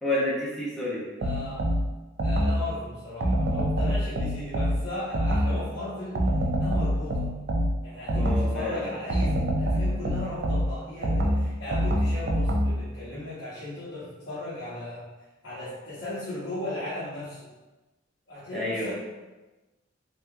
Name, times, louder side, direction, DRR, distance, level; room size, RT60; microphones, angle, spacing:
voice 1, 0.0-1.0 8.1-9.0 18.5-18.9, left 1 dB, ahead, -7 dB, 0.7 m, -29 dB
voice 2, 1.2-1.7 2.2-6.3 6.6-7.3 7.8-15.1 15.4-17.4 18.3-18.9, left 2 dB, 80° left, -11 dB, 1.0 m, -36 dB
sound 1, 1.2-2.7 3.2-5.7 6.2-8.6 9.1-12.9, equal, 55° right, 0.4 m, -26 dB
3.2 x 2.8 x 2.3 m, 1.1 s
head